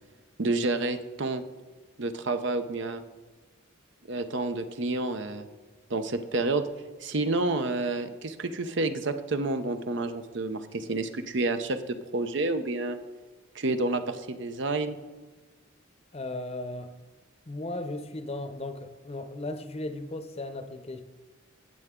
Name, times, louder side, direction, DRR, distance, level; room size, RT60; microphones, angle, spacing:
voice 1, 0.4-1.4 2.0-3.0 4.1-5.5 5.9-6.7 7.0-13.0 13.5-15.0, right 2 dB, 60° right, 9 dB, 0.7 m, -29 dB
voice 2, 16.1-16.9 17.5-21.0, left 2 dB, 30° left, 8 dB, 0.7 m, -36 dB
17.0 x 6.7 x 3.7 m, 1.3 s
head